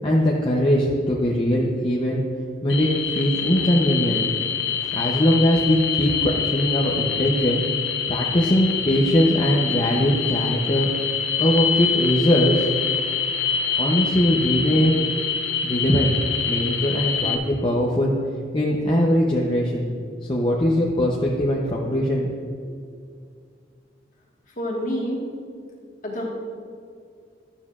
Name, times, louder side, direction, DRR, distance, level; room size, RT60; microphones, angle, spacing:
voice 1, 0.0-2.2 2.6-2.9 3.1-4.2 4.9-7.6 8.1-10.9 11.4-12.7 13.7-15.1 15.6-16.1 16.5-18.1 18.5-19.9 20.3-22.3 22.6-22.7, equal, 25° left, -2 dB, 0.6 m, -21 dB
sound 1, 2.7-17.4, left 7 dB, 80° left, 0.7 m, -26 dB
voice 2, 24.6-25.2 26.0-26.2, equal, 45° left, -3 dB, 1.5 m, -27 dB
11.5 x 7.1 x 2.4 m, 2.3 s
head